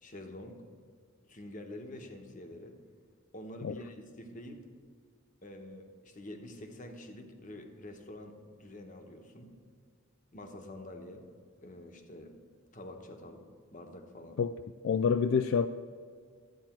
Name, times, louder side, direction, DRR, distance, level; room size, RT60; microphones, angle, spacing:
voice 1, 0.0-0.6 1.3-2.8 3.3-4.7 5.4-9.5 10.3-11.2 11.6-12.3 12.7-14.4, left 1 dB, 40° left, 5 dB, 1.1 m, -47 dB
voice 2, 14.8-15.7, left 6 dB, 65° left, 10 dB, 0.3 m, -27 dB
13.0 x 8.9 x 4.5 m, 2.1 s
head